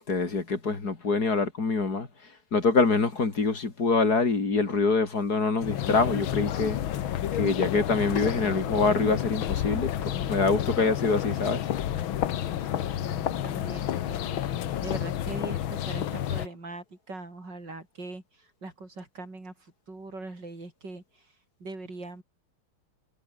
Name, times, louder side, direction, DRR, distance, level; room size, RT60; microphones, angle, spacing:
voice 1, 0.1-2.1 2.5-6.8 7.3-11.6, left 4 dB, 45° left, 3.6 m, -25 dB
sound 1, 5.6-16.5, left 11 dB, 70° left, 1.8 m, -30 dB
voice 2, 12.6-21.2 21.6-22.2, right 2 dB, 50° right, 6.3 m, -41 dB
omnidirectional pair, 2.4 m